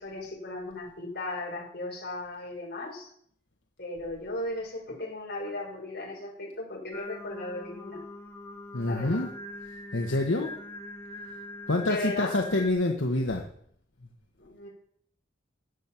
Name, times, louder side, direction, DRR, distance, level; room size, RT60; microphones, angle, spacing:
voice 1, 0.0-3.1 3.8-8.0 8.8-9.2 11.8-12.4 14.4-14.7, left 2 dB, 55° left, -2 dB, 5.1 m, -36 dB
Singing, 6.9-12.7, left 1 dB, 15° left, 1.3 m, -42 dB
voice 2, 8.7-9.3 9.9-10.5 11.7-13.5, left 2 dB, 75° left, 2 dB, 1.3 m, -27 dB
14.5 x 9.8 x 5.9 m, 0.66 s
head